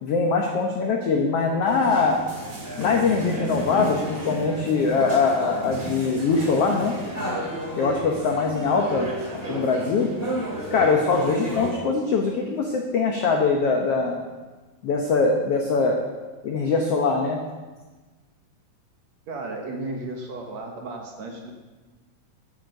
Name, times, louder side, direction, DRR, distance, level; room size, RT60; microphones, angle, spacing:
voice 1, 0.0-2.2 2.8-6.9 7.8-9.1 9.5-10.1 10.7-14.2 14.8-16.0 16.4-17.4, left 4 dB, 75° left, 1 dB, 1.4 m, -22 dB
sound 1, 1.6-11.7, equal, 20° right, 1.9 m, -32 dB
voice 2, 19.3-21.5, right 2 dB, 60° right, 1 dB, 2.1 m, -34 dB
10.0 x 9.0 x 6.5 m, 1.3 s
omnidirectional pair, 4.1 m